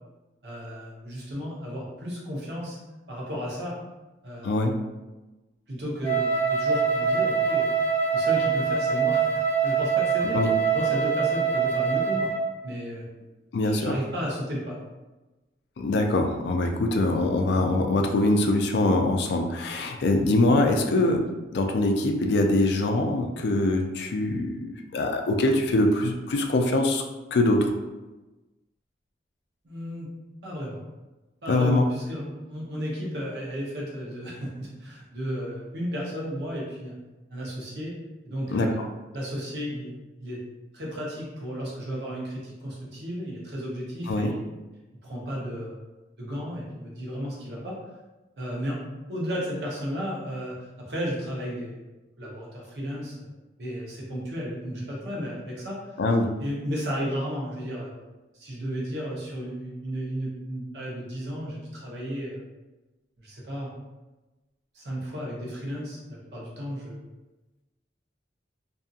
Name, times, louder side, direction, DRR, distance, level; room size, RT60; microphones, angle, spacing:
voice 1, 0.4-2.8 3.1-3.8 4.2-4.6 5.7-7.7 8.1-9.3 9.6-12.3 12.6-13.1 13.6-14.8 29.6-30.1 30.4-30.8 31.4-37.0 37.3-38.0 38.2-38.8 39.1-40.4 40.7-44.4 45.0-45.8 46.2-47.8 48.4-48.8 49.1-51.8 52.2-53.3 53.6-55.9 56.4-57.9 58.3-62.4 63.2-63.7 64.7-67.0, equal, 70° right, -4 dB, 0.8 m, -33 dB
Wind instrument woodwind instrument, 6.0-12.4, right 6 dB, 15° left, 0.7 m, -24 dB
voice 2, 13.5-13.9 15.8-21.3 21.5-27.0 27.3-27.7 31.5-31.8 38.5-38.7 44.1-44.3 56.0-56.3, left 2 dB, 70° left, 3 dB, 0.3 m, -23 dB
2.6 x 2.6 x 2.4 m, 1.1 s
head